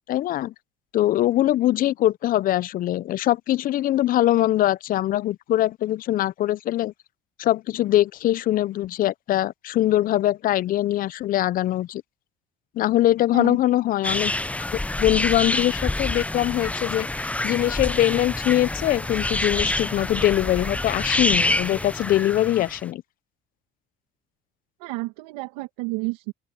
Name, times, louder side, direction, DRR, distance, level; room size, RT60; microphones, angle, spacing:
voice 1, 0.1-0.5 0.9-6.9 7.4-12.0 12.8-14.3 15.0-23.0, left 14 dB, 55° left, 0.5 m, -22 dB
sound 1, 14.0-22.8, left 2 dB, 10° left, 0.6 m, -27 dB
voice 2, 24.8-26.3, right 24 dB, 85° right, 1.9 m, -30 dB
open air
supercardioid pair, 75°, 17 cm